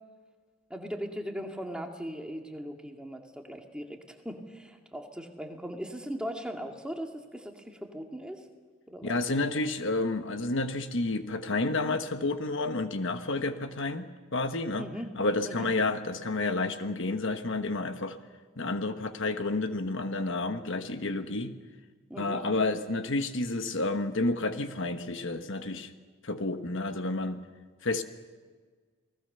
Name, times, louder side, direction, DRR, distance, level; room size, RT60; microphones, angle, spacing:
voice 1, 0.7-8.5 8.9-9.6 14.8-15.1 15.4-15.7 22.1-22.4, equal, 5° right, 2 dB, 2.2 m, -39 dB
voice 2, 9.0-14.9 15.2-18.2 18.6-21.5 22.2-25.9 26.2-27.4 27.8-28.0, left 2 dB, 55° left, 8 dB, 1.2 m, -30 dB
28.5 x 19.5 x 6.8 m, 1.5 s
head